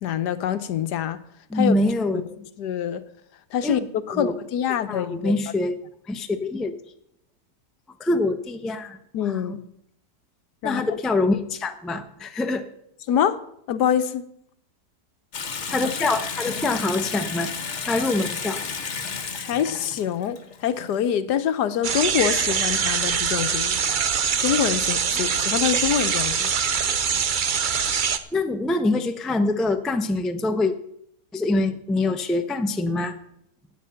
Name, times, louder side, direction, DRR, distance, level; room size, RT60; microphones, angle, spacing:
voice 1, 0.0-1.2 1.5-1.8 2.4-3.0 3.5-5.3 9.1-9.6 10.6-11.0 13.1-13.4 13.7-14.2 19.3-23.8 24.4-26.5, left 9 dB, 75° left, 1.4 m, -25 dB
voice 2, 1.5-2.4 3.6-3.8 4.1-4.3 4.9-5.8 6.1-6.8 8.0-9.0 9.2-9.6 10.6-12.6 15.7-17.5 17.8-18.6 28.3-30.7 31.3-33.1, left 2 dB, ahead, 0.5 m, -24 dB
Water tap faucet / Sink (filling or washing) / Bathtub (filling or washing), 15.3-21.0, left 5 dB, 45° left, 1.3 m, -32 dB
sound 1, 21.8-28.2, right 6 dB, 65° right, 0.5 m, -23 dB
16.5 x 9.1 x 5.8 m
omnidirectional pair, 1.8 m